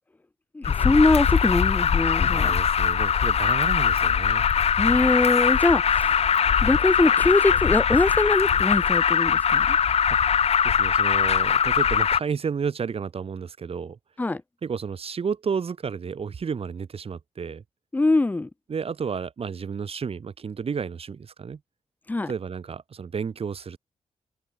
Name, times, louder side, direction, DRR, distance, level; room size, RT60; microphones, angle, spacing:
voice 1, 0.5-2.5 4.8-6.1 6.6-9.8 14.2-14.4 17.9-18.5 22.1-22.3, left 2 dB, 15° left, 0.5 m, -22 dB
Alarm, 0.6-12.2, left 7 dB, 60° left, 0.9 m, -21 dB
voice 2, 2.3-4.5 10.1-14.0 14.6-17.6 18.7-21.6 22.3-23.8, right 6 dB, 55° right, 2.7 m, -32 dB
wide cardioid pair, 105°, 12 cm